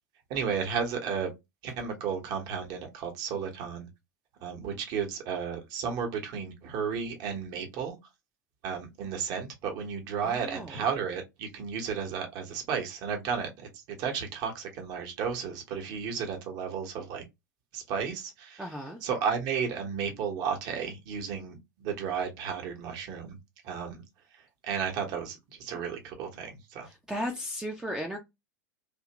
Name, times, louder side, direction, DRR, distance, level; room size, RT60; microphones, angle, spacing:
voice 1, 0.3-1.3 1.6-3.9 4.4-7.9 8.6-17.2 17.7-18.7 19.0-23.4 23.6-24.0 24.6-26.9, right 6 dB, 45° right, 1.0 m, -33 dB
voice 2, 10.2-10.8 18.6-19.0 27.1-28.2, equal, 5° right, 0.5 m, -35 dB
2.8 x 2.4 x 2.9 m
figure-of-eight pair, 90°, 10 cm